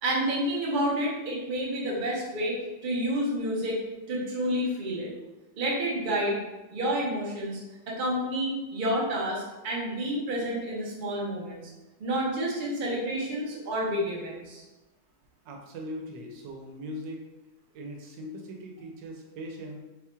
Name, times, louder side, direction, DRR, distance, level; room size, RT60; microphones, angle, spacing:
voice 1, 0.0-3.8 4.1-5.1 5.6-6.4 6.7-7.6 7.9-11.6 12.0-14.6, equal, 35° right, -4 dB, 0.8 m, -29 dB
voice 2, 15.4-17.2 17.7-19.8, equal, 90° right, 0 dB, 1.4 m, -40 dB
4.1 x 2.4 x 4.3 m, 1.1 s
omnidirectional pair, 1.9 m